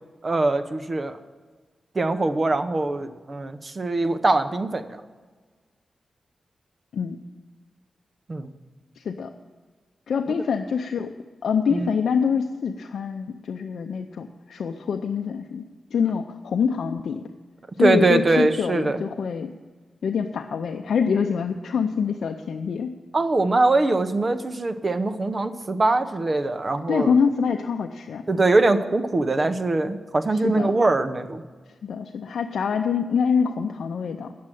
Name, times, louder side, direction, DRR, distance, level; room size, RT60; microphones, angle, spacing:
voice 1, 0.2-1.2 1.9-5.0 8.3-8.5 11.7-11.9 17.8-19.0 23.1-27.1 28.3-31.4, right 2 dB, 40° right, 9 dB, 0.8 m, -22 dB
voice 2, 9.0-9.3 10.1-11.1 11.4-15.6 15.9-17.3 17.8-19.5 20.0-22.9 26.9-28.2 30.3-30.7 31.8-34.3, left 6 dB, 85° left, 5 dB, 0.5 m, -25 dB
9.4 x 7.6 x 9.0 m, 1.4 s
cardioid pair, 75°, 0 cm